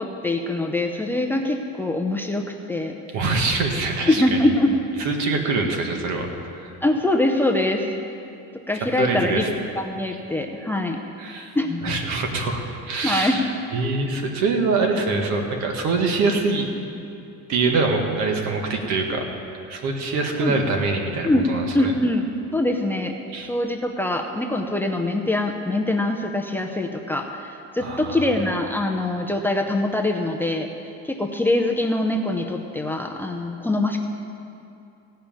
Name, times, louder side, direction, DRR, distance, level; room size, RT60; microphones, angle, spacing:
voice 1, 0.0-2.9 4.1-4.8 6.8-7.9 8.7-9.4 9.8-11.0 11.5-11.9 13.0-13.4 20.4-20.6 21.2-21.4 21.7-22.2 22.5-23.1 23.5-30.7 31.0-34.0, left 1 dB, 5° left, 2 dB, 0.6 m, -23 dB
voice 2, 3.1-4.5 5.0-6.7 9.0-9.5 11.2-11.5 11.8-13.5 13.7-16.7 17.5-19.2 19.7-21.9 23.3-23.5 27.8-28.3, right 3 dB, 65° right, 3 dB, 1.8 m, -24 dB
16.5 x 5.7 x 8.8 m, 2.6 s
cardioid pair, 140°, 31 cm